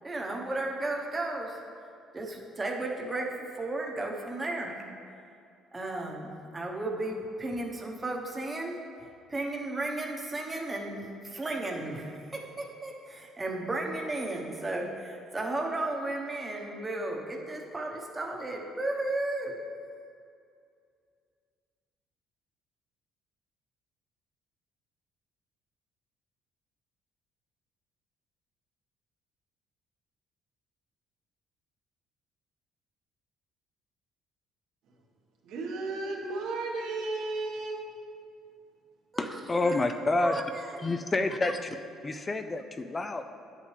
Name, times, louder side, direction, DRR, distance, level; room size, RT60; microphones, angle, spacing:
voice 1, 0.0-1.6 2.1-4.8 5.7-8.8 9.3-19.5 39.1-39.2 39.5-39.9 40.1-40.4 40.8-40.9, right 2 dB, 15° right, 0 dB, 1.0 m, -34 dB
voice 2, 35.4-37.8 39.6-39.8, right 3 dB, 80° right, -1 dB, 1.5 m, -34 dB
voice 3, 39.2-40.4 40.8-41.8 42.0-43.2, left 2 dB, 20° left, 7 dB, 0.4 m, -29 dB
9.9 x 8.4 x 3.3 m, 2.4 s
cardioid pair, 130°, 0 cm